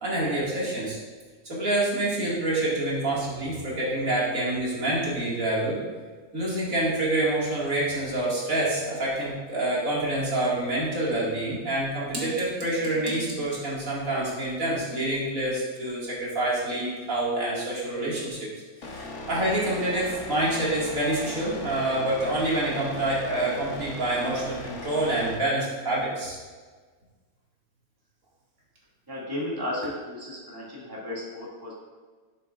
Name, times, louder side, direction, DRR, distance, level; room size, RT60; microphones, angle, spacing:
voice 1, 0.0-1.0 1.4-5.8 6.3-18.4 18.9-26.4, right 1 dB, 60° right, -6 dB, 2.4 m, -27 dB
sound 1, 18.8-25.4, left 2 dB, 55° left, 1.3 m, -38 dB
voice 2, 29.1-31.7, left 1 dB, 15° right, -7 dB, 2.1 m, -34 dB
11.5 x 7.1 x 2.4 m, 1.4 s
omnidirectional pair, 1.6 m